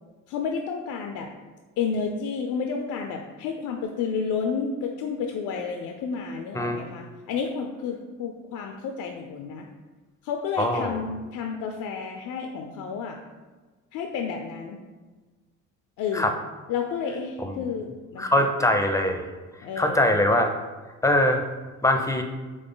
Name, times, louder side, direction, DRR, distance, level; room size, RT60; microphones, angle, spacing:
voice 1, 0.3-1.3 1.8-9.7 10.2-13.2 13.9-14.8 16.0-16.4 16.7-18.7 19.6-20.1, left 6 dB, 80° left, 3 dB, 0.5 m, -31 dB
voice 2, 10.6-11.0 16.1-16.3 17.4-17.6 18.2-19.2 19.8-20.5 21.0-21.4 21.8-22.2, left 1 dB, 10° left, 5 dB, 0.5 m, -22 dB
3.9 x 3.2 x 3.8 m, 1.3 s
cardioid pair, 90°, 30 cm